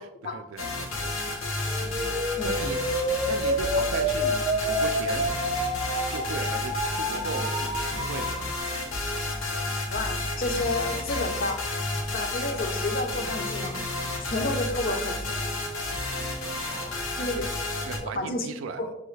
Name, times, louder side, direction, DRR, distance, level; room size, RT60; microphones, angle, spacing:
voice 1, 0.0-1.4 2.1-2.8 3.2-5.3 6.1-8.5 16.7-17.0 17.8-18.9, right 5 dB, 75° right, 9 dB, 0.4 m, -38 dB
sound 1, 0.6-18.0, left 2 dB, 80° left, 0.8 m, -31 dB
sound 2, 1.6-8.6, equal, 35° right, 0.7 m, -29 dB
voice 2, 9.9-11.6 12.1-13.8 14.2-15.4 17.2-17.5 18.0-18.5 18.8-18.9, left 2 dB, 45° left, 5 dB, 0.5 m, -30 dB
5.8 x 2.3 x 3.1 m, 0.86 s
head